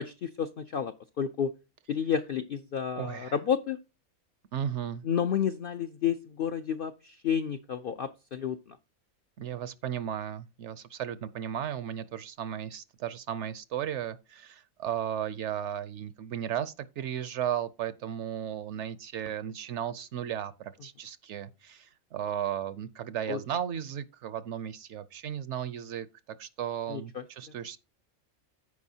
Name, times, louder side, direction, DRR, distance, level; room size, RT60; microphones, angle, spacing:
voice 1, 0.0-1.5 1.9-3.8 5.0-8.8 23.3-23.4 26.9-27.2, left 8 dB, 70° left, 0.5 m, -31 dB
voice 2, 3.0-3.3 4.5-5.0 9.4-26.1 26.4-27.8, right 9 dB, 65° right, 0.8 m, -35 dB
14.5 x 4.9 x 2.7 m
omnidirectional pair, 1.5 m